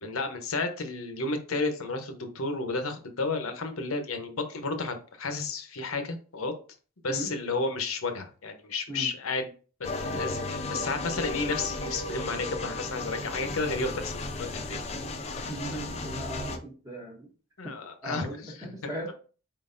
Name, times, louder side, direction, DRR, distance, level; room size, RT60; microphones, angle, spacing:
voice 1, 0.0-6.5 7.0-9.5 10.0-14.2 14.5-14.9 17.6-19.1, left 3 dB, 85° left, 7 dB, 0.8 m, -32 dB
sound 1, 9.8-16.6, left 2 dB, 30° left, 0.4 m, -34 dB
voice 2, 15.5-17.3 17.6-17.8 18.0-19.1, right 1 dB, 15° right, -3 dB, 0.7 m, -38 dB
4.5 x 3.8 x 2.5 m, 0.38 s
head